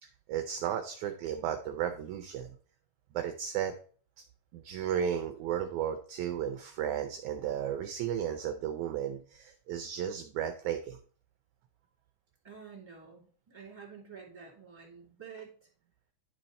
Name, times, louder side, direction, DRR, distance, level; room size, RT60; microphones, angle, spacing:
voice 1, 0.0-2.6 3.1-3.7 4.5-11.0, right 9 dB, 75° right, 7 dB, 1.8 m, -34 dB
voice 2, 12.4-15.7, right 6 dB, 10° right, -3 dB, 2.6 m, -49 dB
11.0 x 4.5 x 4.1 m, 0.43 s
omnidirectional pair, 3.9 m